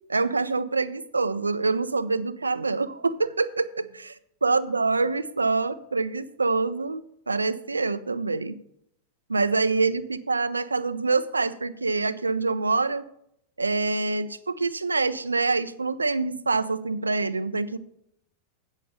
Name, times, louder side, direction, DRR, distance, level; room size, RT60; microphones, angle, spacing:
voice 1, 0.1-3.7 3.9-4.1 4.4-8.6 9.3-13.0 13.6-17.8, right 3 dB, 80° right, 14 dB, 0.4 m, -25 dB
8.4 x 6.5 x 6.6 m, 0.76 s
figure-of-eight pair, 90°, 0 cm